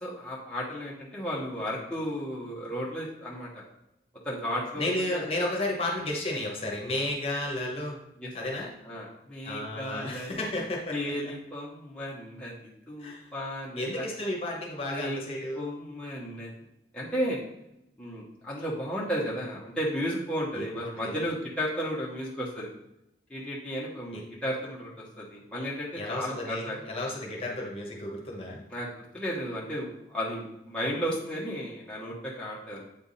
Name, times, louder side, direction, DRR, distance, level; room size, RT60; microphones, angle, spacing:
voice 1, 0.0-3.6 4.2-5.2 8.2-8.3 8.8-10.4 10.9-12.5 12.9-14.1 14.9-15.2 15.5-16.5 16.9-17.4 18.0-22.7 23.3-26.8 28.7-28.9 29.1-32.9, equal, 5° left, -7 dB, 1.1 m, -34 dB
voice 2, 4.8-8.0 8.3-8.7 9.4-11.1 13.0-13.3 13.7-15.7 20.5-21.2 24.1-24.2 25.9-28.7, left 1 dB, 35° left, -2 dB, 1.2 m, -33 dB
8.1 x 3.5 x 4.1 m, 0.85 s
head